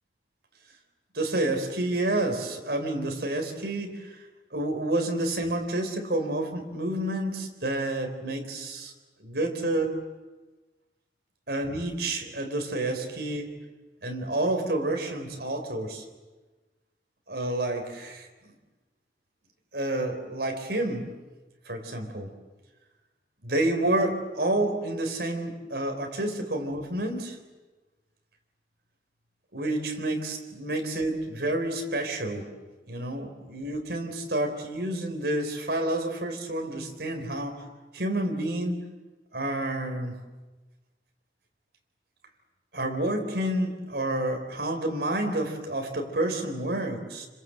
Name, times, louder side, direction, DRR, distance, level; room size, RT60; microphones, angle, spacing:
voice 1, 1.1-4.1 4.5-8.9 9.2-10.0 11.5-13.5 14.0-16.0 17.3-18.3 19.7-21.1 21.7-22.3 23.4-27.4 29.5-32.5 32.9-37.6 37.9-38.8 39.3-40.2 42.7-47.3, right 1 dB, 70° right, 4 dB, 4.2 m, -29 dB
27.5 x 26.0 x 7.9 m, 1.2 s
head